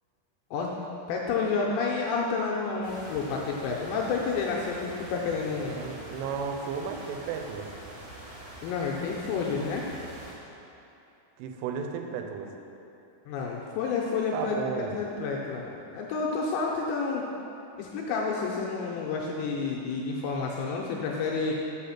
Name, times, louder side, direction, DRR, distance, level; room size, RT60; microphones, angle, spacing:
voice 1, 1.1-5.8 8.6-9.9 13.3-17.3 17.8-21.5, left 4 dB, 85° left, -2 dB, 2.6 m, -30 dB
sound 1, 2.8-10.3, right 1 dB, 60° right, 2.7 m, -45 dB
voice 2, 5.7-7.7 11.4-12.5 14.3-15.1, right 6 dB, 85° right, 4 dB, 3.3 m, -34 dB
6.6 x 6.3 x 5.7 m, 2.8 s
omnidirectional pair, 5.6 m